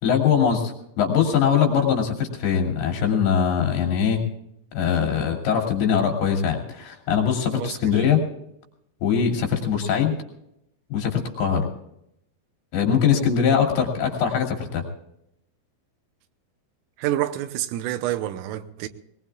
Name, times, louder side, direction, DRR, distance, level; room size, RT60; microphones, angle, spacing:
voice 1, 0.0-4.2 4.7-8.2 9.0-10.2 10.9-11.7 12.7-14.8, left 7 dB, 55° left, 4.2 m, -22 dB
voice 2, 7.5-8.0 17.0-18.9, right 13 dB, 85° right, 3.5 m, -28 dB
22.0 x 20.0 x 2.4 m
omnidirectional pair, 5.7 m